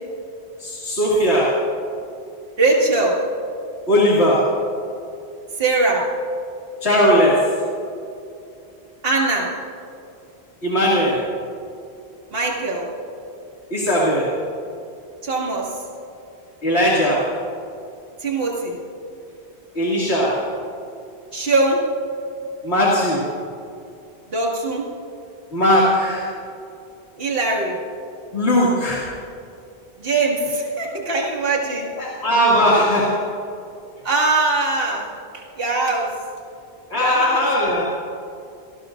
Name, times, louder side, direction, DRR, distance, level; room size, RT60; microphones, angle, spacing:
voice 1, 0.6-1.5 3.9-4.4 6.8-7.4 10.6-11.2 13.7-14.3 16.6-17.2 19.8-20.4 22.6-23.2 25.5-26.3 28.3-29.1 32.0-33.2 36.9-37.9, equal, 80° left, -6 dB, 2.7 m, -18 dB
voice 2, 2.6-3.2 5.6-6.1 9.0-9.5 12.3-12.9 15.2-15.8 18.2-18.8 21.3-21.8 24.3-24.9 27.2-27.8 30.0-31.9 34.0-35.1 35.3-36.1 36.9-37.4, right 3 dB, 60° right, -3 dB, 2.4 m, -21 dB
29.0 x 18.5 x 2.6 m, 2.6 s
omnidirectional pair, 1.1 m